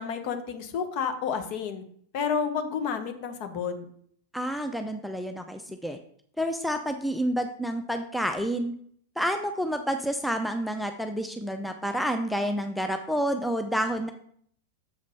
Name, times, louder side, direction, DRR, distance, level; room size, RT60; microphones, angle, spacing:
voice 1, 0.0-1.8 2.1-3.8, left 6 dB, 45° left, 7 dB, 1.1 m, -30 dB
voice 2, 4.3-6.0 6.4-8.7 9.2-14.1, equal, ahead, 6 dB, 0.6 m, -29 dB
7.1 x 5.2 x 5.5 m, 0.63 s
figure-of-eight pair, 90°, 0 cm